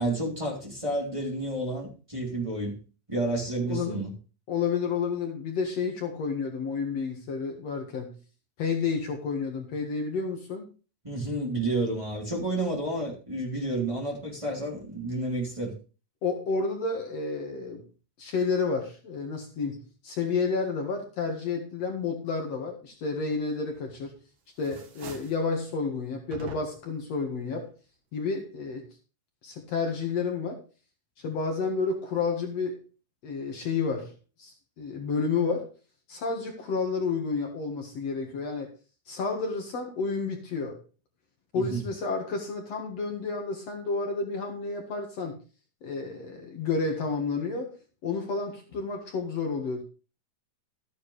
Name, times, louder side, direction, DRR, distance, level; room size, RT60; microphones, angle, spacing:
voice 1, 0.0-2.8 3.1-4.1 11.0-15.7 41.5-41.8, right 2 dB, 10° right, 3.2 m, -30 dB
voice 2, 3.6-4.0 4.5-8.1 8.6-10.7 16.2-17.9 18.2-24.2 24.6-27.7 28.1-28.9 29.4-30.6 31.2-32.8 33.2-34.1 34.4-35.7 36.1-38.7 39.1-40.8 41.5-45.4 45.8-47.7 48.0-49.8, left 4 dB, 60° left, 2.7 m, -30 dB
sound 1, 23.7-24.2 24.5-25.5 26.3-27.0, right 3 dB, 80° right, 3.2 m, -45 dB
13.5 x 9.6 x 3.3 m
omnidirectional pair, 3.5 m